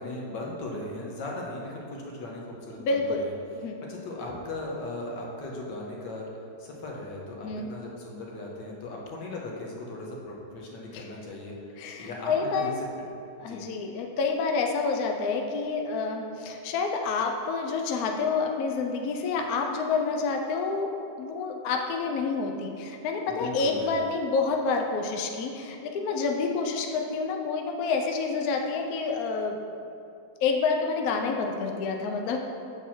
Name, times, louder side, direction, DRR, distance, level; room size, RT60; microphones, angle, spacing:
voice 1, 0.0-2.9 3.2-3.3 3.9-6.3 6.6-11.5 12.0-13.1 13.4-13.6 23.3-23.9, left 2 dB, 90° left, -2 dB, 1.7 m, -37 dB
voice 2, 2.8-3.2 3.6-3.8 7.4-7.7 10.9-11.1 11.8-12.8 13.4-29.6 30.4-32.4, left 4 dB, 70° left, 3 dB, 1.0 m, -28 dB
7.1 x 4.6 x 4.3 m, 2.6 s
omnidirectional pair, 1.8 m